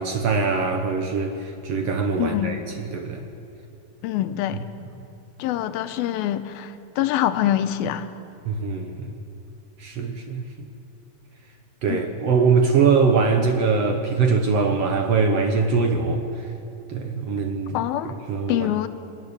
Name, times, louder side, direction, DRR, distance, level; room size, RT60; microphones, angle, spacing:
voice 1, 0.0-2.6 2.9-3.2 8.4-9.1 9.8-10.7 11.8-16.2 16.9-18.7, right 4 dB, 70° right, 5 dB, 1.5 m, -22 dB
voice 2, 2.2-2.6 4.0-4.7 5.4-8.1 11.9-12.0 17.7-18.1 18.5-18.9, left 12 dB, 85° left, 10 dB, 2.6 m, -25 dB
22.5 x 13.0 x 9.9 m, 2.7 s
omnidirectional pair, 4.3 m